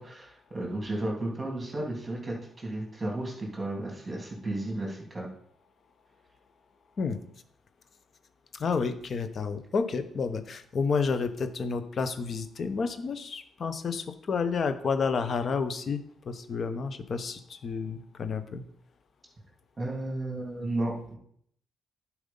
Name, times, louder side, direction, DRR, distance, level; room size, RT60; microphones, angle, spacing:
voice 1, 0.0-5.3 19.8-21.2, right 1 dB, 25° right, -1 dB, 3.1 m, -33 dB
voice 2, 8.5-16.0 16.2-18.6, left 5 dB, 50° left, 10 dB, 1.0 m, -30 dB
10.5 x 4.8 x 5.5 m, 0.66 s
cardioid pair, 90°, 0 cm